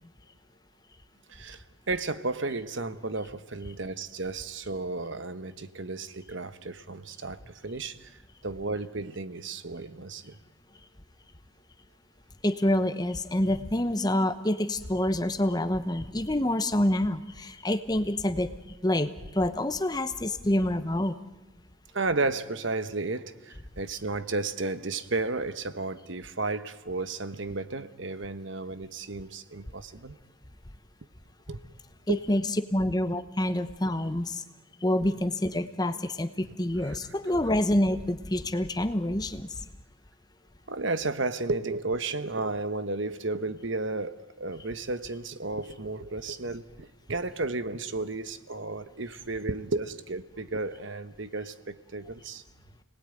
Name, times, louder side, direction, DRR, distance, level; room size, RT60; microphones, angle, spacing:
voice 1, 1.3-10.4 21.9-30.2 31.5-31.6 32.1-32.2 36.8-37.0 40.7-52.4, right 3 dB, 70° right, 11 dB, 1.2 m, -33 dB
voice 2, 12.4-18.5 18.8-21.2 32.1-32.4 32.7-34.4 34.8-39.5, left 1 dB, 20° left, 11 dB, 0.9 m, -27 dB
30.0 x 19.5 x 9.1 m, 1.1 s
head